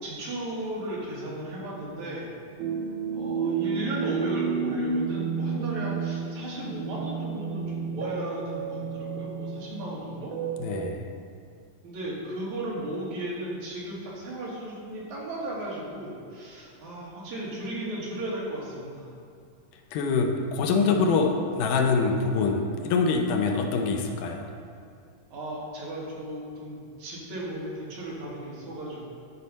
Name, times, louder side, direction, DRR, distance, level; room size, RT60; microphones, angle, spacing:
voice 1, 0.0-2.3 3.1-10.3 11.8-19.1 25.3-29.1, right 1 dB, 65° right, -5 dB, 2.9 m, -35 dB
sound 1, 2.6-10.9, right 5 dB, 90° right, 1.3 m, -31 dB
voice 2, 10.6-11.1 19.9-24.5, left 4 dB, 85° left, 3 dB, 2.3 m, -25 dB
11.0 x 4.3 x 5.3 m, 2.4 s
omnidirectional pair, 3.7 m